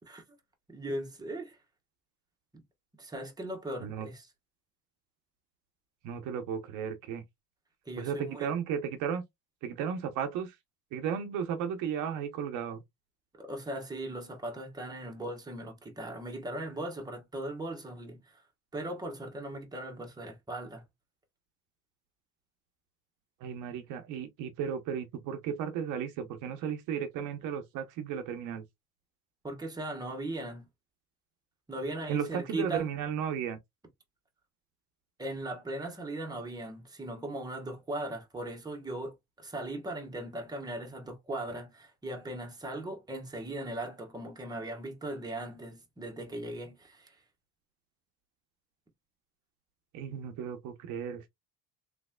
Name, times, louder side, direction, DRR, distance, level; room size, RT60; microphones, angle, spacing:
voice 1, 0.7-1.6 2.5-2.6 3.0-4.3 7.8-8.5 13.3-18.4 18.7-20.8 29.4-30.7 31.7-32.9 35.2-47.2, right 1 dB, 15° right, 1.3 m, -38 dB
voice 2, 6.0-7.2 8.0-9.2 9.6-10.6 10.9-12.8 23.4-28.6 32.1-33.6 49.9-51.3, right 8 dB, 75° right, 0.9 m, -34 dB
3.4 x 3.1 x 2.2 m
cardioid pair, 105°, 31 cm